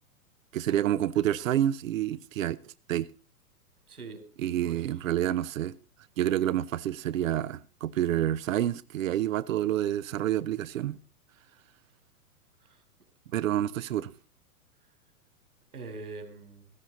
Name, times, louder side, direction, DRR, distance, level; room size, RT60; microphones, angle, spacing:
voice 1, 0.5-3.1 4.4-5.8 6.2-11.0 13.3-14.1, right 12 dB, 60° right, 0.9 m, -28 dB
voice 2, 3.9-4.2 4.7-5.0 12.6-12.8 13.6-13.8 15.7-16.7, right 3 dB, 80° right, 4.1 m, -44 dB
16.5 x 15.0 x 4.0 m
figure-of-eight pair, 105°, 44 cm